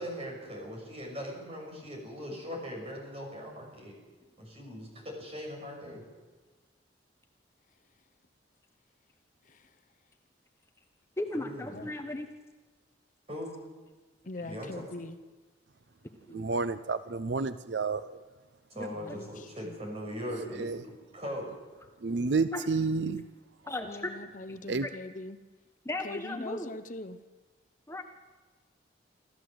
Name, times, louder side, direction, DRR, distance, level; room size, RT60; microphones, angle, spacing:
voice 1, 0.0-3.9 4.4-6.0 11.3-11.8 13.3-13.6 14.4-14.8 18.7-21.5, equal, 30° right, 0 dB, 6.3 m, -40 dB
voice 2, 11.2-12.3 16.3-16.5 18.8-19.2 22.5-22.6 23.7-24.1 24.8-24.9 25.8-26.7 27.9-28.0, left 1 dB, 15° left, 5 dB, 1.1 m, -36 dB
voice 3, 14.3-15.2 19.0-19.8 23.8-25.4 26.0-27.2, left 2 dB, 45° left, 10 dB, 0.8 m, -42 dB
voice 4, 16.3-18.2 20.5-20.8 22.0-23.3 24.7-24.9, right 4 dB, 70° right, 14 dB, 0.6 m, -30 dB
26.0 x 14.0 x 7.9 m, 1.3 s
head